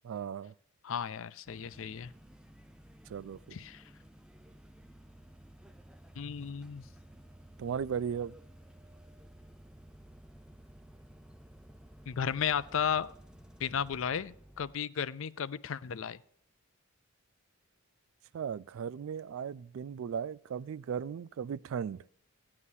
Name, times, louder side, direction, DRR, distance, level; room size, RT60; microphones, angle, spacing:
voice 1, 0.0-0.5 3.1-3.6 7.6-8.3 18.3-22.0, right 7 dB, 65° right, 0.3 m, -36 dB
voice 2, 0.8-2.1 3.5-3.9 6.2-6.9 12.1-13.1 13.6-16.2, left 7 dB, 60° left, 0.4 m, -34 dB
sound 1, 1.5-14.7, right 1 dB, 5° right, 0.5 m, -55 dB
15.0 x 9.7 x 2.7 m
head